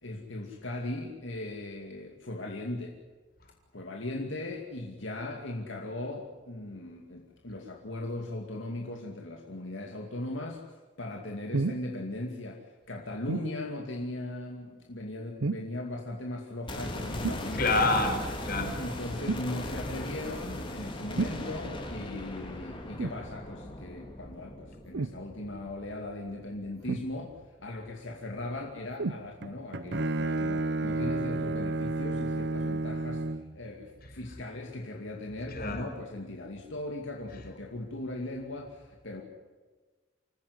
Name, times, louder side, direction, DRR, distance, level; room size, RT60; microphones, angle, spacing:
voice 1, 0.0-2.9 3.7-10.6 11.0-17.6 18.7-27.3 27.6-39.2, left 1 dB, 70° left, 1 dB, 2.5 m, -38 dB
sound 1, 11.5-11.9 13.3-13.5 15.4-15.8 17.2-17.5 19.3-19.5 21.2-21.4 23.0-23.2 24.9-25.2 26.9-27.4 29.0-29.3 30.1-30.2, right 3 dB, 90° right, 0.7 m, -31 dB
sound 2, 16.7-26.7 27.0-27.1, left 1 dB, 25° left, 3.5 m, -39 dB
voice 2, 17.5-18.7 35.5-35.8, left 2 dB, 50° left, 5 dB, 4.4 m, -27 dB
Bowed string instrument, 29.4-33.6, right 2 dB, 60° right, 0.9 m, -31 dB
27.0 x 15.0 x 9.7 m, 1.3 s
head